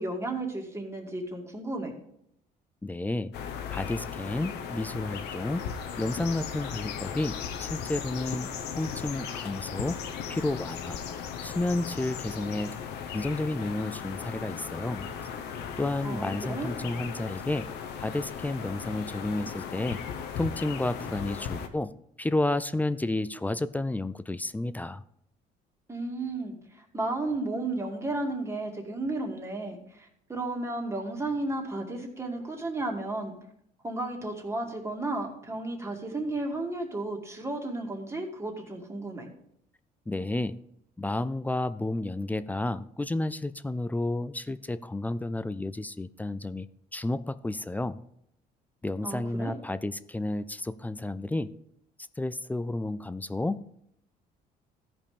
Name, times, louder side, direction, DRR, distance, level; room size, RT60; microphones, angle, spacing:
voice 1, 0.0-1.9 16.0-16.7 25.9-33.3 33.8-39.3 49.0-49.6, right 2 dB, 15° right, 1 dB, 2.2 m, -33 dB
voice 2, 2.8-3.3 3.7-5.6 6.0-8.5 8.8-10.0 10.3-11.0 11.4-12.8 13.1-15.1 15.8-17.7 18.0-20.0 20.4-21.9 22.2-25.0 40.1-40.6 41.0-46.7 46.9-48.0 48.8-51.5 52.2-53.6, left 2 dB, 10° left, 14 dB, 0.4 m, -31 dB
sound 1, 3.3-21.7, left 7 dB, 85° left, 1.1 m, -37 dB
14.0 x 5.4 x 5.1 m, 0.74 s
cardioid pair, 110°, 17 cm